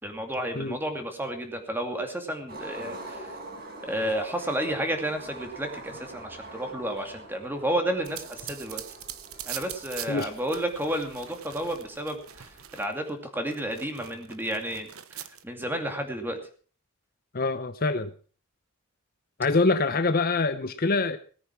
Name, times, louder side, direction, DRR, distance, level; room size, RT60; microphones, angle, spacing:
voice 1, 0.0-3.3 3.8-8.8 9.5-16.4, right 1 dB, 10° right, 5 dB, 2.4 m, -31 dB
Skateboard, 2.5-12.6, right 2 dB, 45° right, 5.6 m, -45 dB
sound 1, 8.0-13.1 13.5-15.4, right 11 dB, 90° right, 1.1 m, -42 dB
voice 2, 17.3-18.1 19.4-21.2, left 3 dB, 45° left, 10 dB, 0.8 m, -25 dB
18.0 x 9.6 x 6.0 m, 0.42 s
head